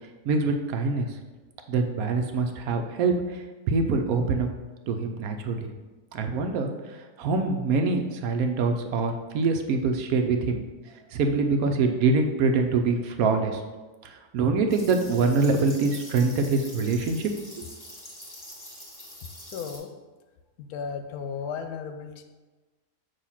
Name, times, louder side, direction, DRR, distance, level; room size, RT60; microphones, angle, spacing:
voice 1, 0.2-1.1 1.7-4.5 4.9-5.7 6.1-10.6 11.1-13.6 14.0-17.3, right 4 dB, 70° right, 5 dB, 1.0 m, -25 dB
sound 1, 14.7-19.8, left 1 dB, 15° left, 1.3 m, -44 dB
voice 2, 19.2-19.9 20.6-22.2, left 6 dB, 75° left, 7 dB, 1.0 m, -35 dB
6.6 x 2.7 x 5.6 m, 1.2 s
omnidirectional pair, 1.7 m